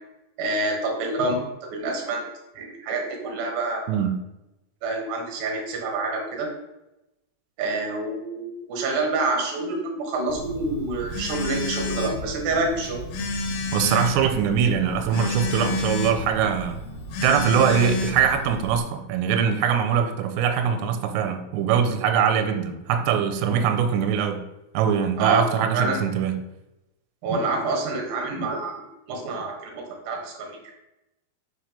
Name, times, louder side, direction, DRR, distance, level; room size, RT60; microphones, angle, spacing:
voice 1, 0.4-1.4 1.7-2.3 2.5-4.0 4.8-6.5 7.6-13.0 25.2-26.0 27.2-28.8 29.1-30.8, right 2 dB, 65° right, 1 dB, 2.8 m, -27 dB
Telephone, 10.3-18.8, left 2 dB, 75° left, 2.8 m, -30 dB
voice 2, 13.7-16.8 17.2-24.4 24.7-26.4, right 7 dB, 85° right, 6 dB, 2.8 m, -22 dB
6.3 x 3.1 x 5.1 m, 0.93 s
omnidirectional pair, 5.0 m